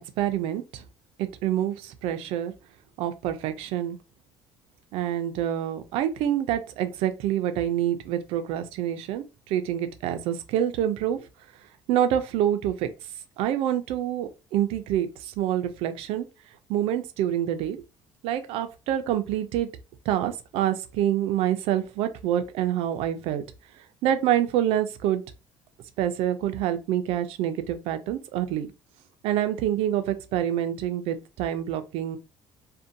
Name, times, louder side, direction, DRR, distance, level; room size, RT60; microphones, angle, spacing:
voice 1, 0.2-0.8 1.2-2.5 3.0-4.0 4.9-11.3 11.9-12.9 13.4-16.3 16.7-17.8 18.2-19.7 20.1-23.4 24.0-25.2 26.0-28.7 29.2-32.2, right 11 dB, 80° right, 0.4 m, -26 dB
2.6 x 2.1 x 2.5 m
cardioid pair, 170°, 10 cm